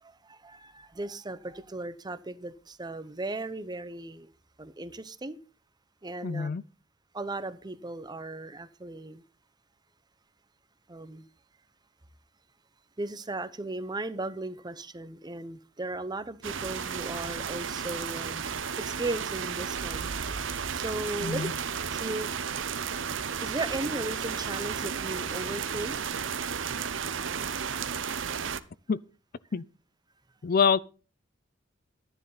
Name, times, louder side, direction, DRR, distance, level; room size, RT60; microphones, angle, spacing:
voice 1, 0.0-4.3 4.6-5.4 6.0-6.5 7.1-9.2 10.9-11.3 13.0-20.1 20.7-21.5 21.9-22.3 23.4-26.0, right 2 dB, 20° right, 0.8 m, -36 dB
voice 2, 6.2-6.6 21.2-21.5 28.9-29.0 29.5-29.6 30.4-30.8, left 6 dB, 50° left, 0.4 m, -25 dB
sound 1, 16.4-28.6, right 7 dB, 80° right, 0.8 m, -33 dB
12.0 x 10.5 x 4.0 m
head